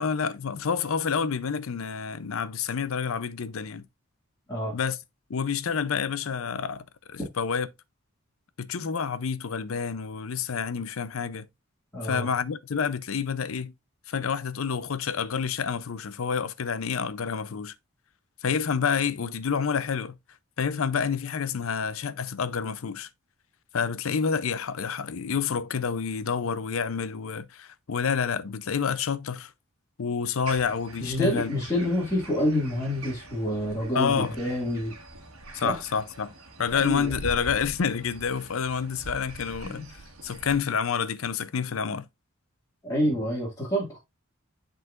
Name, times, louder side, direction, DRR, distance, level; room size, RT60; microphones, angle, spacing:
voice 1, 0.0-3.8 4.7-5.0 5.3-7.7 8.6-11.5 12.0-13.7 14.1-17.7 18.4-20.1 20.6-23.1 23.7-29.5 30.0-31.5 33.9-34.4 35.5-42.0, left 6 dB, 70° left, 0.5 m, -28 dB
voice 2, 11.9-12.3 31.0-34.9 35.5-35.8 36.7-37.1 39.6-39.8 42.8-44.0, equal, 15° left, 1.9 m, -27 dB
sound 1, 30.5-40.6, right 2 dB, 85° right, 1.4 m, -44 dB
10.5 x 3.9 x 2.4 m
head